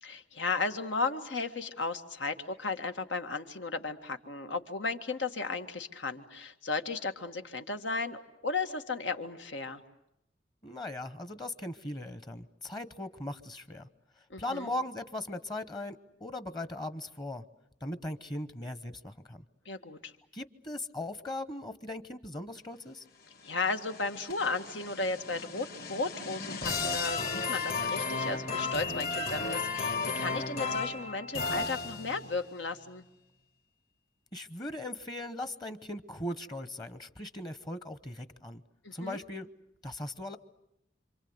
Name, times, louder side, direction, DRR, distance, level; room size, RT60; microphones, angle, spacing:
voice 1, 0.0-9.8 14.3-14.7 19.7-20.1 23.4-33.1 38.8-39.2, left 3 dB, 90° left, 7 dB, 1.9 m, -35 dB
voice 2, 10.6-13.9 14.4-17.4 17.8-19.4 20.3-23.0 34.3-38.6 38.9-39.5 39.8-40.4, left 1 dB, 25° left, 12 dB, 1.0 m, -39 dB
sound 1, 23.5-32.4, left 4 dB, 55° left, 2.9 m, -34 dB
27.5 x 26.0 x 8.0 m, 0.83 s
head